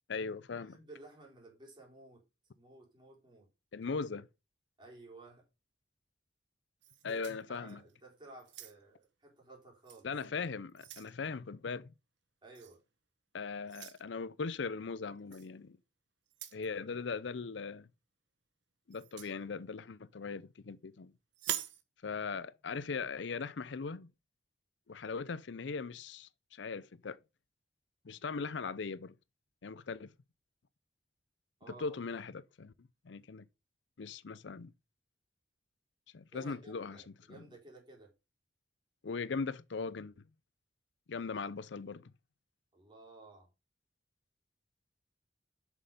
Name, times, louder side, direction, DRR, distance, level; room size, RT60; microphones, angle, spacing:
voice 1, 0.1-0.8 3.7-4.3 7.0-7.8 10.0-11.9 13.3-15.8 16.5-17.9 18.9-21.1 22.0-24.1 24.9-27.2 28.0-29.2 29.6-30.1 31.7-33.5 34.0-34.7 36.1-37.4 39.0-40.2 41.1-42.1, left 4 dB, 85° left, 0.6 m, -39 dB
voice 2, 0.7-2.2 2.6-3.5 4.8-5.4 7.0-10.1 12.4-12.8 16.9-17.0 31.6-32.0 36.3-38.1 42.7-43.5, right 2 dB, 25° right, 4.2 m, -55 dB
sound 1, 6.8-8.0 8.4-9.0 9.8-10.0 10.4-11.2 12.6-12.8 13.7-14.0 15.3-15.5 16.3-16.7 18.9-19.4 21.3-21.8, right 11 dB, 85° right, 1.3 m, -43 dB
7.5 x 6.4 x 5.2 m
head